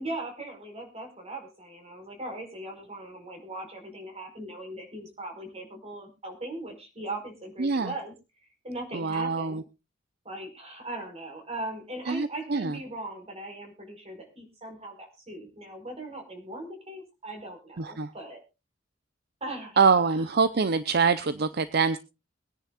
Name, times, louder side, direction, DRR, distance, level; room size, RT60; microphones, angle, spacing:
voice 1, 0.0-8.1 8.6-9.6 10.2-18.4 19.4-20.2, right 1 dB, 35° right, 4 dB, 4.8 m, -39 dB
voice 2, 7.6-7.9 8.9-9.6 12.1-12.8 17.8-18.1 19.8-22.0, right 5 dB, 55° right, 13 dB, 0.7 m, -24 dB
23.5 x 10.0 x 2.4 m, 0.28 s
head